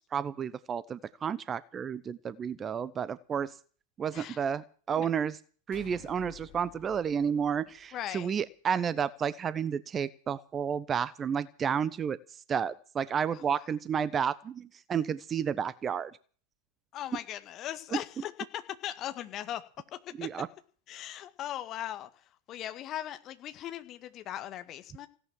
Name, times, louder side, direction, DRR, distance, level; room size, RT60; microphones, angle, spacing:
voice 1, 0.1-3.5 4.0-5.4 5.7-12.2 12.5-16.1 17.9-18.0 20.2-20.5, right 7 dB, 25° right, 19 dB, 0.7 m, -31 dB
sound 1, 5.7-8.3, left 12 dB, 50° left, 4.3 m, -53 dB
voice 2, 7.9-8.3 13.5-13.7 16.9-19.6 19.9-20.3 20.9-22.1 22.5-25.1, left 12 dB, 35° left, 10 dB, 1.8 m, -39 dB
17.0 x 11.0 x 7.3 m, 0.41 s
figure-of-eight pair, 90°, 0 cm